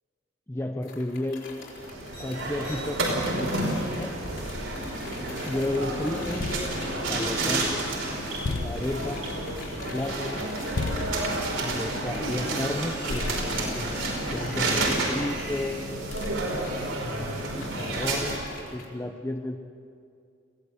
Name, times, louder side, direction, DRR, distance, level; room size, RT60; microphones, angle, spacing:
voice 1, 0.5-1.6 2.2-4.2 5.5-6.5 7.1-7.9 8.5-9.5 9.9-10.5 11.6-14.0 14.3-15.8 17.0-18.3 18.7-19.6, left 1 dB, 15° left, 5 dB, 0.6 m, -33 dB
sound 1, 0.8-7.7 8.0-18.9, left 3 dB, 70° left, 4.2 m, -45 dB
sound 2, 1.7-18.4, right 2 dB, 85° right, 5.1 m, -30 dB
sound 3, 4.5-5.7 6.1-12.8 13.1-15.3 16.1-17.6 18.3-18.7, left 3 dB, 85° left, 0.7 m, -38 dB
22.0 x 16.0 x 8.1 m, 2.4 s
head